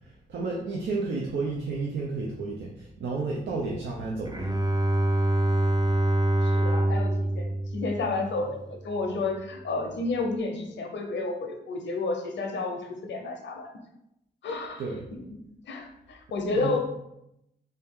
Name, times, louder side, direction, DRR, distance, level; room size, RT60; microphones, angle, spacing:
voice 1, 0.0-4.5 14.8-15.1 16.5-16.8, right 3 dB, 80° right, -2 dB, 0.6 m, -32 dB
Bowed string instrument, 4.3-8.8, right 1 dB, 20° right, 0.6 m, -25 dB
voice 2, 6.4-13.8 14.4-14.8 15.1-16.8, left 3 dB, 85° left, 4 dB, 0.7 m, -31 dB
3.3 x 2.8 x 3.6 m, 0.81 s
cardioid pair, 65°, 18 cm